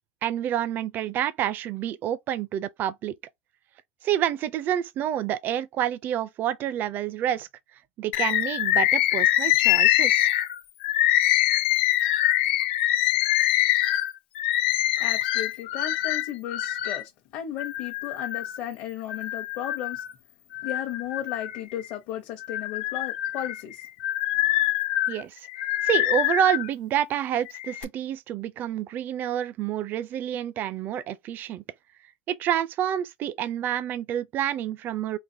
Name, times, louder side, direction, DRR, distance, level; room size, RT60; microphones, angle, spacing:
voice 1, 0.2-3.2 4.0-7.5 8.0-10.3 25.1-25.5 25.8-31.6 32.3-35.2, right 10 dB, 35° right, 0.4 m, -28 dB
Bird, 8.1-17.0 17.6-18.6 19.1-20.1 20.5-21.9 22.4-26.7 27.4-27.8, left 14 dB, 80° left, 0.5 m, -24 dB
voice 2, 15.0-20.0 20.6-23.8, left 11 dB, 50° left, 0.8 m, -35 dB
3.9 x 2.4 x 2.7 m
supercardioid pair, 145°, 6 cm